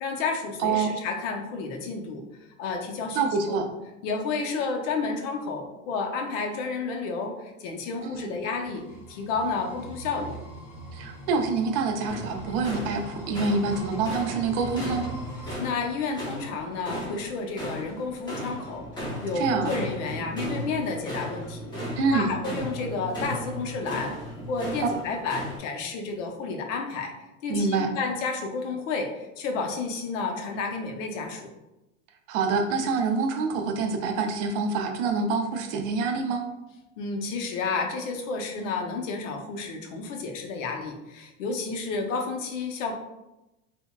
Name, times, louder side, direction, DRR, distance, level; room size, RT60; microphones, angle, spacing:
voice 1, 0.0-2.2 2.6-3.6 4.0-8.8 9.1-10.4 15.6-21.7 22.1-24.2 24.5-27.1 27.4-31.5 37.0-42.9, left 4 dB, 70° left, 3 dB, 0.7 m, -31 dB
voice 2, 0.6-0.9 3.1-3.7 8.0-8.4 10.9-15.1 19.4-19.7 22.0-22.3 27.5-27.9 32.3-36.4, right 4 dB, 60° right, 5 dB, 0.5 m, -26 dB
sound 1, 8.6-15.6, right 1 dB, 45° left, 1.1 m, -41 dB
sound 2, 12.1-25.6, equal, 10° left, 0.7 m, -36 dB
3.4 x 2.1 x 2.2 m, 0.96 s
supercardioid pair, 140°, 39 cm